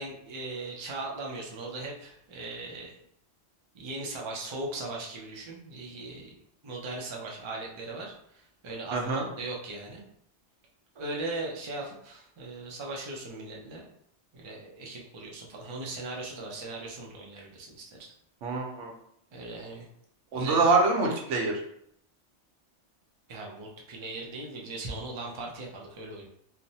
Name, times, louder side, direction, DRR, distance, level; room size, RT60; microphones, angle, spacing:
voice 1, 0.0-3.0 3.7-10.0 10.9-13.8 14.3-18.1 19.3-19.9 20.3-20.6 23.3-26.3, right 2 dB, 45° right, -2 dB, 0.3 m, -39 dB
voice 2, 8.9-9.3 18.4-18.9 20.3-21.5, right 3 dB, 80° right, 1 dB, 1.0 m, -25 dB
3.1 x 2.0 x 2.7 m, 0.69 s
omnidirectional pair, 1.2 m